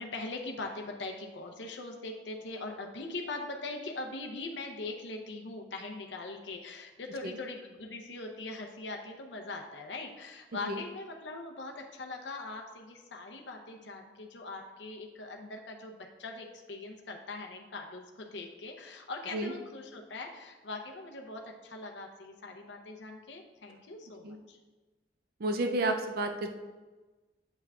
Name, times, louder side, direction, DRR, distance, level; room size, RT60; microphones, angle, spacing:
voice 1, 0.0-24.6, left 3 dB, 80° left, 2 dB, 0.7 m, -41 dB
voice 2, 25.4-26.6, right 2 dB, 55° right, 5 dB, 0.5 m, -31 dB
7.9 x 5.7 x 2.3 m, 1.2 s
head